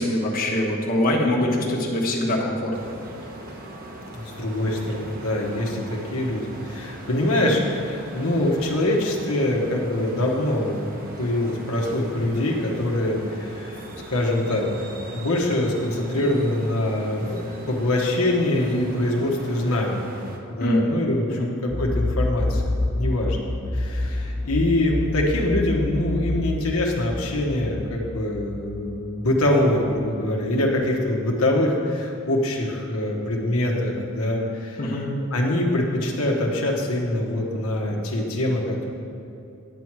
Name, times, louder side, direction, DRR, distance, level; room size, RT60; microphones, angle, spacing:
voice 1, 0.0-2.9 20.6-20.9 21.3-21.5 34.8-35.1, left 1 dB, 40° left, -2 dB, 1.3 m, -23 dB
sound 1, 2.7-20.4, right 1 dB, 45° right, 1.1 m, -40 dB
voice 2, 4.1-14.8 15.1-20.0 20.5-23.4 23.7-34.8 35.3-38.8, left 1 dB, 80° left, -1 dB, 1.2 m, -24 dB
sound 2, 21.7-29.8, left 2 dB, 10° left, 0.9 m, -28 dB
10.0 x 4.7 x 7.4 m, 2.7 s
head